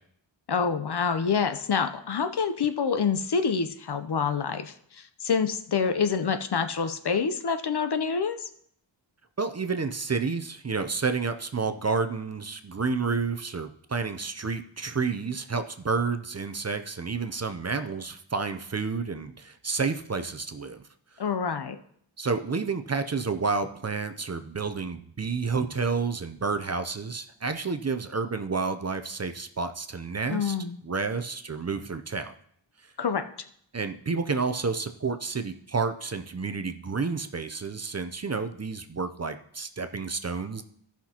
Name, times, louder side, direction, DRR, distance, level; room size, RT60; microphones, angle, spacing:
voice 1, 0.5-8.5 21.2-21.8 30.3-30.8 33.0-33.2, left 6 dB, 55° left, 9 dB, 0.7 m, -27 dB
voice 2, 9.4-20.8 22.2-30.6 30.8-32.3 32.8-32.9 33.7-40.6, right 4 dB, 35° right, 8 dB, 0.5 m, -30 dB
16.5 x 5.8 x 2.9 m, 0.67 s
wide cardioid pair, 85°, 46 cm